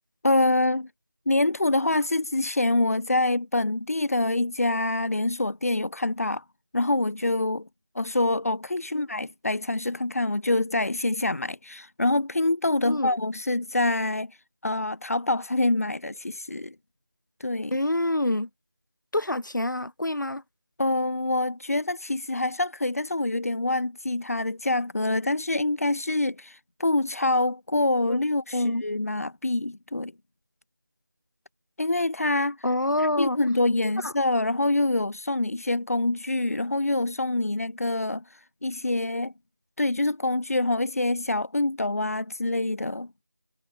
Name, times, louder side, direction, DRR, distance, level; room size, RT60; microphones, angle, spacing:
voice 1, 0.2-0.9 1.3-6.4 6.7-7.7 7.9-14.4 14.6-16.7 17.4-17.8 20.8-30.1 31.8-32.6 33.0-38.2 38.6-39.3 39.8-43.1, left 2 dB, 50° left, 3.3 m, -26 dB
voice 2, 17.7-18.5 19.1-20.4 28.1-28.2 28.5-28.8 32.6-33.4 34.0-34.1, left 1 dB, 75° left, 4.7 m, -26 dB
figure-of-eight pair, 175°, 10 cm